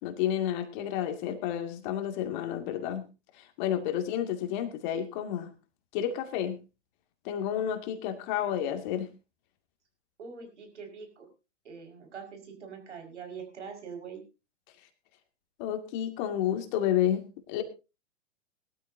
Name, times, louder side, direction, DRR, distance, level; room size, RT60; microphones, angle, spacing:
voice 1, 0.0-3.0 3.6-5.5 5.9-6.6 7.2-9.1 15.6-17.6, left 10 dB, 40° left, 7 dB, 2.4 m, -30 dB
voice 2, 10.2-11.3 11.6-14.2, right 6 dB, 70° right, 4 dB, 5.3 m, -43 dB
20.0 x 13.0 x 2.7 m, 0.29 s
hypercardioid pair, 120°, 36 cm